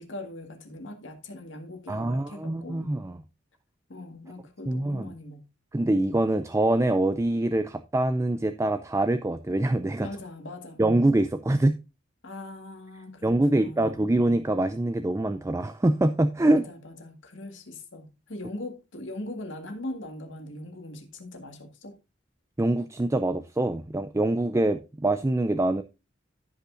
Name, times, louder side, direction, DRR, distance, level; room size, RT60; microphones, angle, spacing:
voice 1, 0.0-2.9 3.9-5.5 10.0-10.8 12.2-14.2 16.5-22.0, left 1 dB, 80° left, 1.9 m, -40 dB
voice 2, 1.9-3.2 4.7-5.1 5.7-10.1 10.8-11.8 13.2-16.7 22.6-25.8, right 1 dB, 15° right, 0.4 m, -24 dB
16.0 x 5.4 x 2.6 m
head